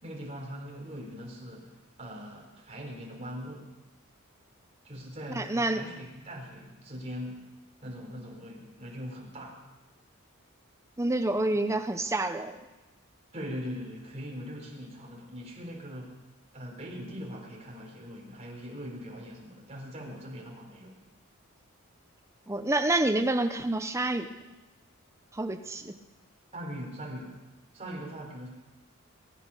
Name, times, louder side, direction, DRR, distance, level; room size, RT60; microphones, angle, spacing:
voice 1, 0.0-3.7 4.8-7.5 7.8-9.6 13.3-16.2 16.5-20.9 26.5-27.4 27.7-28.5, equal, 30° right, -1 dB, 3.8 m, -41 dB
voice 2, 5.3-5.8 11.0-12.6 22.5-24.3 25.3-25.9, right 2 dB, 15° right, 7 dB, 0.7 m, -28 dB
22.0 x 10.5 x 5.5 m, 1.1 s
head